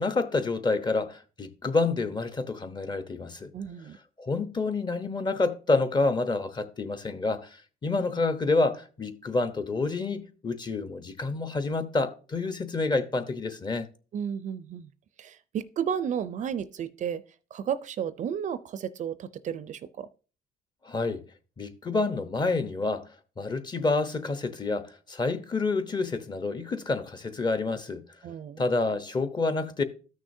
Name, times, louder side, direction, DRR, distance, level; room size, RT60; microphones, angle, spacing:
voice 1, 0.0-3.5 4.2-7.6 7.8-13.9 20.8-21.2 21.6-23.1 23.4-28.0 28.6-29.8, left 3 dB, 25° left, 0.9 m, -28 dB
voice 2, 3.5-4.0 14.1-14.9 15.2-17.2 17.5-20.1 28.2-28.6, right 8 dB, 45° right, 0.5 m, -33 dB
13.0 x 6.3 x 2.7 m
cardioid pair, 110°, 17 cm